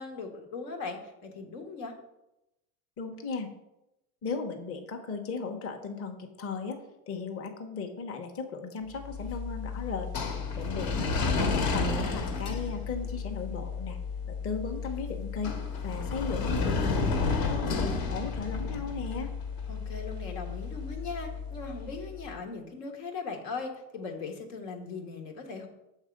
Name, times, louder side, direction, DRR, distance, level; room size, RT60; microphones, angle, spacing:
voice 1, 0.0-1.9 10.9-11.4 11.7-11.9 19.7-25.7, left 4 dB, 80° left, 3 dB, 1.3 m, -39 dB
voice 2, 3.0-3.5 4.2-10.1 10.6-14.0 14.3-15.6 15.8-19.3, left 4 dB, 30° left, 5 dB, 0.8 m, -36 dB
sound 1, 9.0-22.1, left 4 dB, 60° left, 1.2 m, -32 dB
6.4 x 3.6 x 5.1 m, 0.91 s
hypercardioid pair, 90°, 44 cm